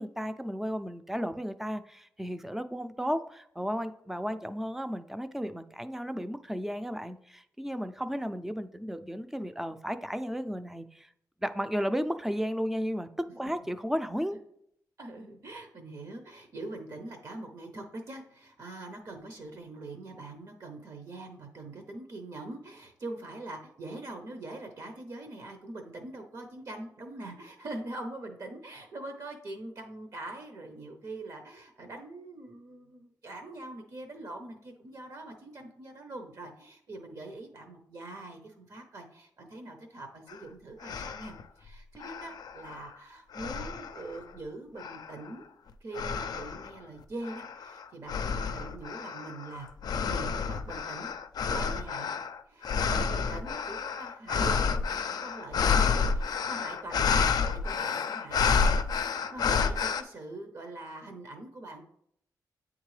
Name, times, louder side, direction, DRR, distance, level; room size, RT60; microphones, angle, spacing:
voice 1, 0.0-11.1 11.4-13.1 13.4-14.4, equal, 5° right, 10 dB, 0.4 m, -34 dB
voice 2, 15.0-45.4 45.8-49.7 50.0-51.1 51.5-52.1 52.5-61.8, right 2 dB, 55° right, 4 dB, 0.7 m, -43 dB
sound 1, 40.3-40.4 40.8-41.4 42.0-42.9 43.3-44.2 44.8-45.3 45.9-46.7 47.2-60.0, left 5 dB, 80° left, 0.4 m, -30 dB
8.7 x 3.7 x 3.2 m, 0.71 s
wide cardioid pair, 125°, 7 cm